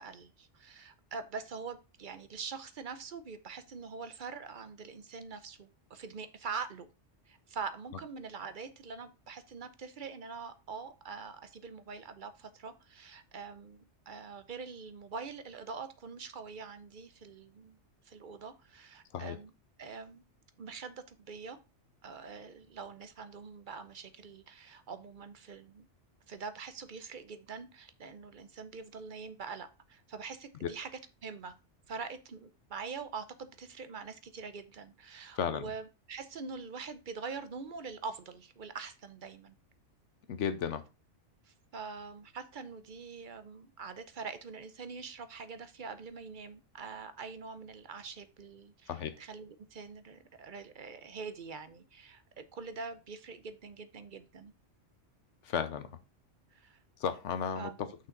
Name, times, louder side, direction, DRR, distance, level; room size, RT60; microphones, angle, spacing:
voice 1, 0.0-6.9 7.3-17.8 18.0-19.5 19.8-20.2 20.6-21.6 22.0-25.9 26.3-30.9 31.2-31.5 31.9-39.6 41.5-48.9 49.2-54.5 56.5-56.8 57.6-57.7, right 5 dB, 50° right, 11 dB, 0.8 m, -44 dB
voice 2, 35.3-35.7 40.3-40.8 48.9-49.2 55.4-55.9 57.0-58.1, left 7 dB, 80° left, 10 dB, 1.1 m, -34 dB
6.2 x 5.8 x 3.8 m, 0.28 s
omnidirectional pair, 1.2 m